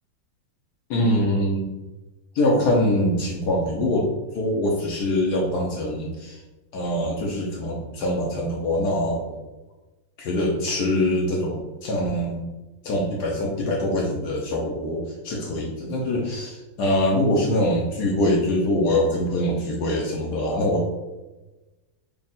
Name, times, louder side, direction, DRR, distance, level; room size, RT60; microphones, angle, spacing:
voice 1, 0.9-1.7 2.3-6.4 6.7-9.4 10.2-12.4 12.8-20.9, left 1 dB, 65° left, -1 dB, 1.0 m, -24 dB
3.5 x 2.3 x 4.0 m, 1.1 s
omnidirectional pair, 2.2 m